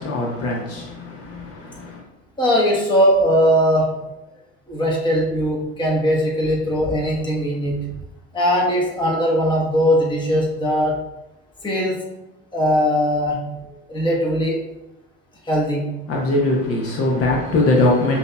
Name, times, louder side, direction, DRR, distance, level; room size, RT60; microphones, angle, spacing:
voice 1, 0.0-2.0 16.1-18.2, left 2 dB, 50° left, 0.9 m, -21 dB
voice 2, 2.4-4.1 4.7-7.9 8.3-11.0 11.6-12.0 12.5-14.6 15.4-15.9, equal, 15° left, 1.1 m, -20 dB
6.0 x 2.8 x 2.2 m
supercardioid pair, 95°, 32 cm